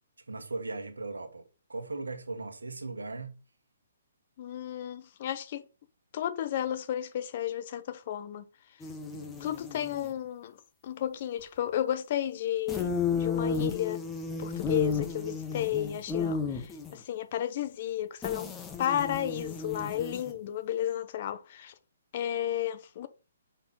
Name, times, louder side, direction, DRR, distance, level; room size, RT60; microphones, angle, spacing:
voice 1, 0.3-3.4 9.1-9.5, right 3 dB, 85° right, 1.3 m, -38 dB
voice 2, 4.4-5.6 6.1-8.4 9.4-10.6 10.8-14.0 14.4-18.5 18.8-21.7 22.1-23.1, left 11 dB, 45° left, 0.7 m, -33 dB
sound 1, 8.8-10.1 12.7-17.0 18.2-20.5, left 5 dB, 15° left, 1.0 m, -33 dB
5.6 x 4.5 x 4.1 m
hypercardioid pair, 135°, 0 cm